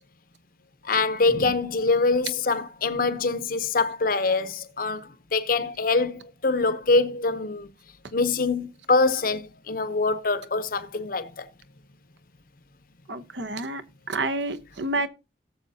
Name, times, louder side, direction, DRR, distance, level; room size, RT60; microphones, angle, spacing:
voice 1, 0.8-7.7 8.1-11.5, left 3 dB, 50° left, 0.7 m, -24 dB
voice 2, 13.1-13.8 14.1-15.1, right 2 dB, 70° right, 0.9 m, -29 dB
18.0 x 7.1 x 2.7 m
head